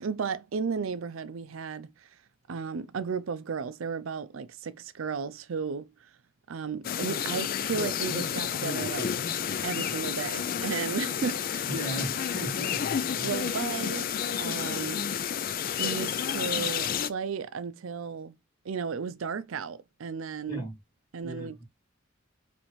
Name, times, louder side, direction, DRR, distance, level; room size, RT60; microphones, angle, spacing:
voice 1, 0.0-2.1 2.5-5.9 6.5-9.1 9.6-11.7 13.2-14.1 14.4-15.1 15.8-18.4 18.6-20.6 21.1-21.6, right 5 dB, 85° right, 0.5 m, -34 dB
sound 1, 6.8-17.1, left 8 dB, 45° left, 0.3 m, -30 dB
voice 2, 11.6-12.8 13.2-13.3 20.5-20.7 21.2-21.6, right 1 dB, 20° left, 2.2 m, -36 dB
4.3 x 3.4 x 3.1 m
head